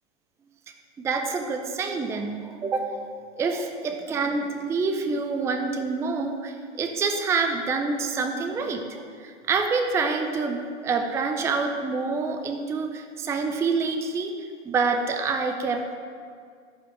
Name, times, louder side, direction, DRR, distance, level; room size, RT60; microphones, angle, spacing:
voice 1, 1.0-3.0 3.3-14.3 14.6-16.0, right 4 dB, 10° right, 5 dB, 0.4 m, -27 dB
7.7 x 5.9 x 7.6 m, 2.2 s
hypercardioid pair, 115°, 37 cm